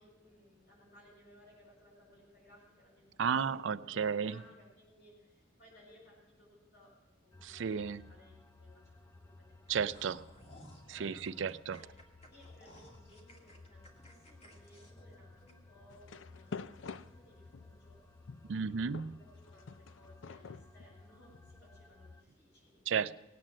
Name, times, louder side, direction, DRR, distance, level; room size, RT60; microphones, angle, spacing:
voice 1, 0.0-6.9 7.2-10.3 10.9-11.2 11.8-11.9 12.3-18.0 18.4-22.8, left 1 dB, 60° left, -6 dB, 7.2 m, -62 dB
voice 2, 3.2-4.3 7.4-8.1 9.7-10.2 10.9-11.8 18.5-19.2 22.9-23.2, right 6 dB, 70° right, 14 dB, 0.5 m, -33 dB
sound 1, 7.3-22.2, left 3 dB, 15° left, 0.4 m, -58 dB
sound 2, 9.6-15.9 16.3-16.4 16.8-17.0, left 1 dB, 35° left, 2.1 m, -58 dB
sound 3, 15.9-17.8 18.3-21.6, left 4 dB, 80° left, 0.5 m, -47 dB
18.0 x 8.8 x 7.6 m, 1.1 s
head